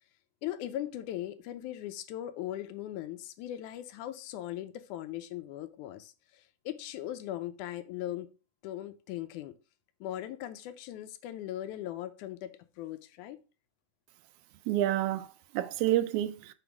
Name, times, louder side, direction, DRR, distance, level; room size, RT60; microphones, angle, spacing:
voice 1, 0.4-8.3 8.6-9.6 10.0-13.4, left 12 dB, 90° left, 2.1 m, -39 dB
voice 2, 14.7-16.5, right 14 dB, 80° right, 1.9 m, -29 dB
7.0 x 3.6 x 4.7 m
omnidirectional pair, 3.4 m